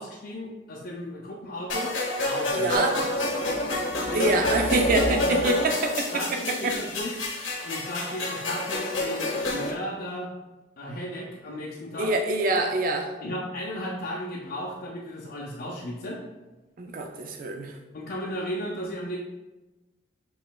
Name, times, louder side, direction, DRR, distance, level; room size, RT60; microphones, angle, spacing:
voice 1, 0.0-1.9 2.2-3.0 3.4-3.6 4.1-4.6 4.9-5.6 6.1-7.1 7.6-10.3 10.8-12.1 13.2-16.2 17.9-19.2, equal, 50° left, -3 dB, 0.5 m, -35 dB
sound 1, 1.7-9.7, left 1 dB, 90° left, 1.0 m, -28 dB
voice 2, 2.5-3.0 4.1-6.1 6.6-6.8 12.0-13.1 16.8-17.7, right 2 dB, 45° right, 3 dB, 0.4 m, -25 dB
7.1 x 3.1 x 2.3 m, 1.1 s
head